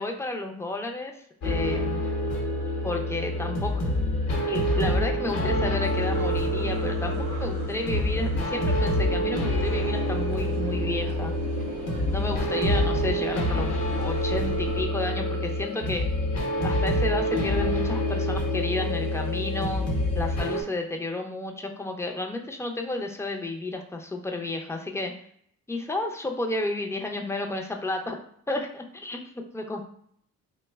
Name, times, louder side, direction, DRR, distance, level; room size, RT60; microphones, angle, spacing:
voice 1, 0.0-2.0 2.8-3.9 4.5-11.3 12.1-16.0 16.6-19.8 20.1-25.1 25.7-28.2 28.5-29.2 29.5-29.8, left 2 dB, 10° left, 3 dB, 0.4 m, -32 dB
sound 1, 1.4-20.6, left 1 dB, 55° left, 0.8 m, -26 dB
sound 2, 5.8-14.9, right 4 dB, 80° right, 0.6 m, -38 dB
2.8 x 2.1 x 3.3 m, 0.65 s
cardioid pair, 90°, 30 cm